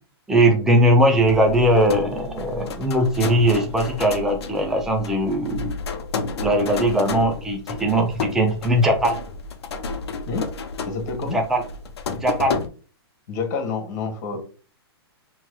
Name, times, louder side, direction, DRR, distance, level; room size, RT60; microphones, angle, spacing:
voice 1, 0.3-5.7 6.4-9.2 11.3-11.6 12.1-12.6, right 1 dB, 5° right, 2 dB, 0.5 m, -20 dB
sound 1, 1.1-12.7, left 4 dB, 75° left, 0.7 m, -31 dB
voice 2, 10.8-11.4 13.3-14.4, left 4 dB, 45° left, 4 dB, 1.5 m, -28 dB
5.6 x 3.0 x 2.3 m, 0.38 s
hypercardioid pair, 145°, 14 cm